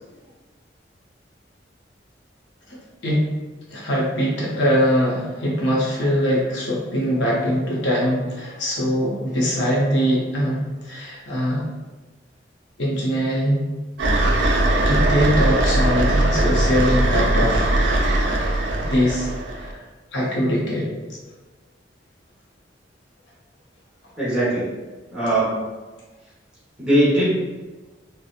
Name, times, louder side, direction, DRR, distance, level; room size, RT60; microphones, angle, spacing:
voice 1, 3.7-11.6 12.8-13.6 14.8-17.7 18.8-19.3 19.6-19.8 20.1-20.9, equal, 75° left, -5 dB, 0.7 m, -22 dB
sound 1, 14.0-19.7, right 1 dB, 70° right, 0.4 m, -20 dB
voice 2, 24.2-24.8 25.1-25.6 26.8-27.4, right 1 dB, 5° right, -10 dB, 1.0 m, -20 dB
2.7 x 2.1 x 2.4 m, 1.2 s
head